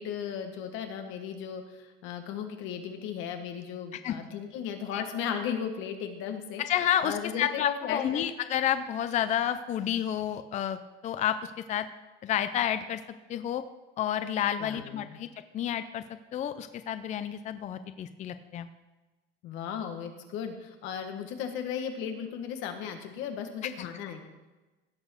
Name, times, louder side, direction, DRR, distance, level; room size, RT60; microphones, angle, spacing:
voice 1, 0.0-6.6 7.0-8.2 14.6-15.2 19.4-24.2, left 8 dB, 90° left, 6 dB, 1.7 m, -36 dB
voice 2, 6.6-11.9 12.2-13.0 13.3-13.6 14.0-15.3 15.5-16.0 16.3-18.7 23.6-23.9, left 10 dB, 40° left, 11 dB, 0.5 m, -30 dB
16.5 x 6.1 x 6.5 m, 1.1 s
cardioid pair, 160°, 19 cm